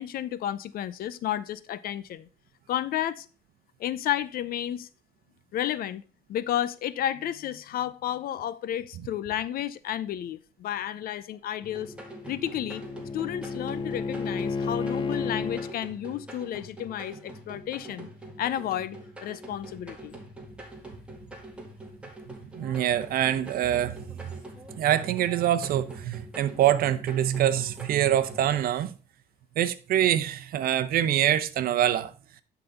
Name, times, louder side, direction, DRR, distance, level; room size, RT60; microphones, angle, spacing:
voice 1, 0.0-2.3 2.7-3.3 3.8-4.9 5.5-6.0 6.3-11.9 12.3-12.8 13.1-18.1 18.4-20.2, left 11 dB, 60° left, 0.6 m, -32 dB
sound 1, 11.6-28.6, right 1 dB, 5° right, 2.0 m, -44 dB
Bowed string instrument, 11.7-15.7, left 4 dB, 30° left, 0.8 m, -32 dB
voice 2, 22.6-24.3 24.8-28.9 29.6-32.1, right 11 dB, 60° right, 0.8 m, -25 dB
10.0 x 4.1 x 5.3 m
cardioid pair, 110°, 17 cm